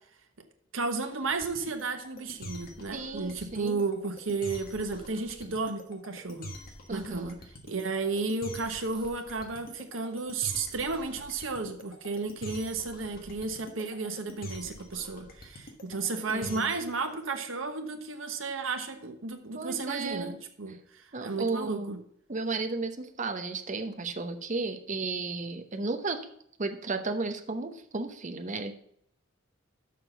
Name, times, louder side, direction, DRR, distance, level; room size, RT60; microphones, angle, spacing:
voice 1, 0.7-6.5 6.9-7.4 7.6-22.0, right 4 dB, 75° right, 6 dB, 1.2 m, -33 dB
sound 1, 1.3-16.9, equal, 45° left, 1.4 m, -45 dB
voice 2, 2.9-3.8 6.9-7.4 16.3-16.7 19.5-20.3 21.1-21.9 22.3-26.2 26.6-28.8, right 3 dB, 40° right, 8 dB, 0.9 m, -34 dB
6.6 x 6.0 x 6.8 m, 0.68 s
head